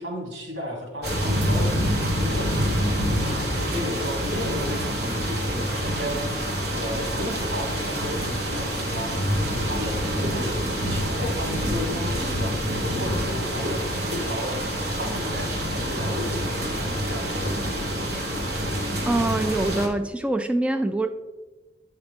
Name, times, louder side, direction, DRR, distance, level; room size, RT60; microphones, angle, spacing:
voice 1, 0.0-6.2 6.8-10.5 10.9-13.8 14.1-14.5 15.0-17.5 17.8-18.2, equal, 90° right, -1 dB, 2.6 m, -34 dB
sound 1, 1.0-19.9, equal, 60° right, 1.4 m, -26 dB
voice 2, 19.0-21.1, right 2 dB, 5° right, 6 dB, 0.3 m, -24 dB
9.0 x 5.7 x 3.5 m, 1.2 s
head